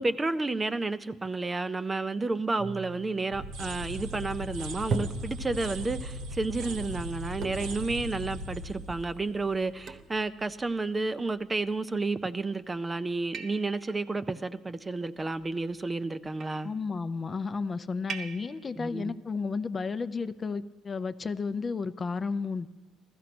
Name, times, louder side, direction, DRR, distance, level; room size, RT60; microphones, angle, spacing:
voice 1, 0.0-16.7 18.8-19.2, right 3 dB, 20° right, 0.5 m, -31 dB
sound 1, 2.6-4.0 4.9-5.9 7.4-7.9 8.5-8.6 9.1-9.2 9.9-10.2 11.3-11.8 12.4-12.8 13.3-14.0 15.2-15.8 16.2-16.7 18.1-18.7, right 4 dB, 55° right, 1.2 m, -39 dB
sound 2, 3.3-10.2, equal, 85° right, 1.5 m, -39 dB
voice 2, 16.6-22.7, left 4 dB, 30° left, 0.6 m, -32 dB
15.5 x 13.5 x 6.0 m
cardioid pair, 100°, 0 cm